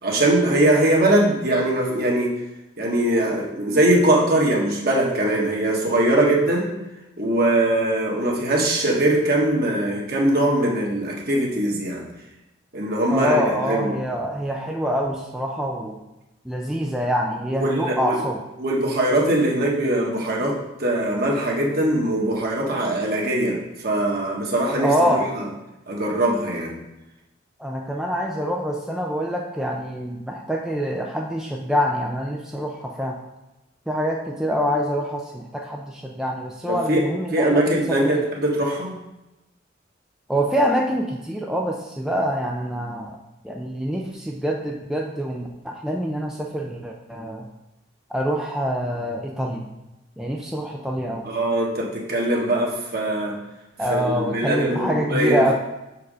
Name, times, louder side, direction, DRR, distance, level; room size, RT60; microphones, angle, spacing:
voice 1, 0.0-2.3 2.8-6.7 7.2-12.0 12.7-13.9 17.5-18.2 18.6-25.4 25.9-26.8 36.7-37.0 37.3-39.0 51.2-53.3 53.9-55.4, right 1 dB, 50° right, -2 dB, 1.5 m, -21 dB
voice 2, 13.1-16.0 16.4-18.4 24.8-25.3 27.6-33.2 33.9-38.2 40.3-43.2 43.4-47.5 48.1-49.7 50.2-51.3 53.8-55.5, equal, 5° right, -1 dB, 0.4 m, -25 dB
6.4 x 4.7 x 4.9 m, 0.98 s
head